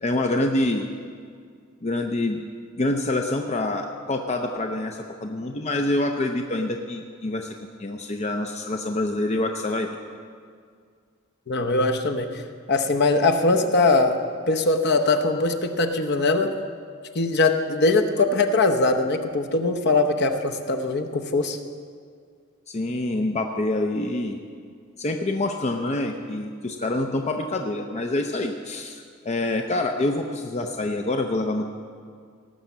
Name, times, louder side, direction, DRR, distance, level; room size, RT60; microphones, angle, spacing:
voice 1, 0.0-0.9 1.8-2.4 2.8-9.9 22.7-24.4 25.0-31.7, left 2 dB, 35° left, 4 dB, 0.6 m, -26 dB
voice 2, 11.5-12.4 12.7-14.2 14.5-16.5 17.1-21.6, left 3 dB, 55° left, 5 dB, 0.9 m, -21 dB
17.5 x 6.4 x 7.2 m, 2.1 s
head